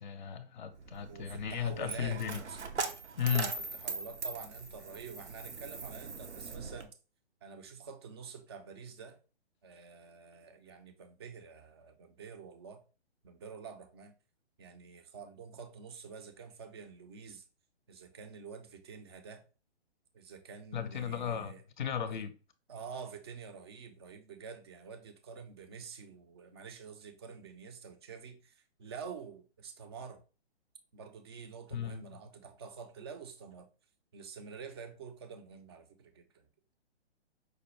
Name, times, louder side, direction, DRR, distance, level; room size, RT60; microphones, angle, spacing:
voice 1, 0.0-2.4 3.2-3.5 20.7-22.3 31.7-32.2, left 8 dB, 45° left, 0.5 m, -35 dB
Coin (dropping), 0.7-6.8, right 4 dB, 90° right, 0.7 m, -41 dB
voice 2, 1.1-2.2 2.5-2.6 3.2-6.9 7.4-9.2 9.6-12.8 13.2-14.1 14.6-17.4 17.9-19.4 20.1-21.6 22.1-22.2 22.7-30.2 30.9-33.7 34.1-36.5, right 6 dB, 25° right, 0.4 m, -48 dB
5.0 x 2.2 x 3.0 m
figure-of-eight pair, 130°, 33 cm